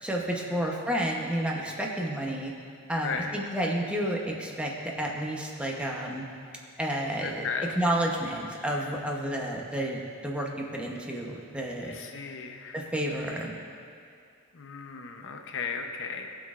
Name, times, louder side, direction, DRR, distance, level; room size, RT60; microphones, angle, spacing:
voice 1, 0.0-2.5 2.9-6.3 6.8-7.5 7.8-11.9 12.7-13.5, right 1 dB, 5° right, -1 dB, 0.9 m, -30 dB
voice 2, 7.2-7.9 8.7-9.0 11.8-12.9 14.5-16.3, left 5 dB, 60° left, 4 dB, 0.8 m, -36 dB
18.0 x 6.3 x 2.5 m, 2.3 s
head